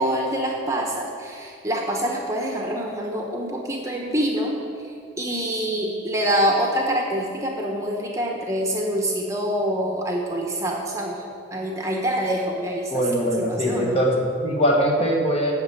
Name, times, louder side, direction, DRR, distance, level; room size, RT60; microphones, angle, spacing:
voice 1, 0.0-4.6 4.8-11.2 11.5-14.0, equal, 15° right, -1 dB, 1.0 m, -26 dB
voice 2, 12.9-15.5, equal, 30° left, 0 dB, 1.4 m, -21 dB
8.7 x 6.7 x 8.1 m, 2.4 s
head